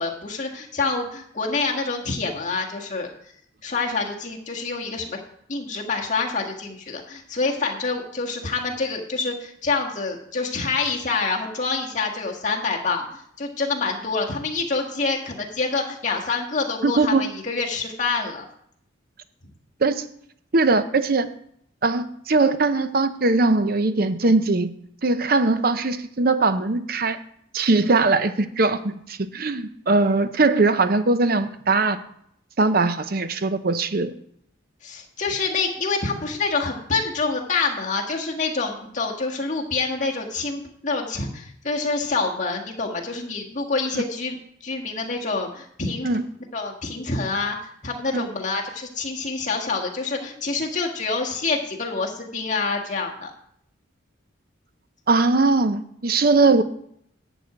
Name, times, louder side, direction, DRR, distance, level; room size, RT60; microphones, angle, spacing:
voice 1, 0.0-3.1 3.6-5.2 5.5-18.4 34.8-44.4 44.6-46.1 46.5-53.3, left 4 dB, 40° left, 0 dB, 1.6 m, -27 dB
voice 2, 16.8-17.2 19.8-20.1 20.5-21.3 21.8-24.7 25.0-27.2 27.5-32.0 32.6-34.1 43.9-44.0 46.0-46.2 48.1-48.3 55.1-56.6, right 3 dB, 45° right, 11 dB, 0.7 m, -20 dB
10.5 x 4.9 x 7.9 m, 0.69 s
head